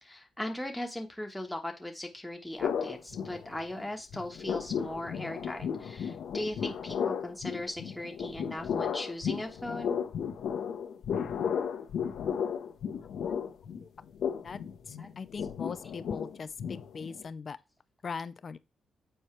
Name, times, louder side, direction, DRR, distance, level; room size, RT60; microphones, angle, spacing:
voice 1, 0.0-10.0 15.0-15.1, left 1 dB, 5° left, 1.3 m, -38 dB
sound 1, 2.6-3.8 4.1-17.3, left 7 dB, 80° left, 1.0 m, -34 dB
voice 2, 14.9-17.6 18.0-18.6, left 5 dB, 50° left, 0.5 m, -40 dB
7.9 x 4.4 x 3.3 m
cardioid pair, 80°, 0 cm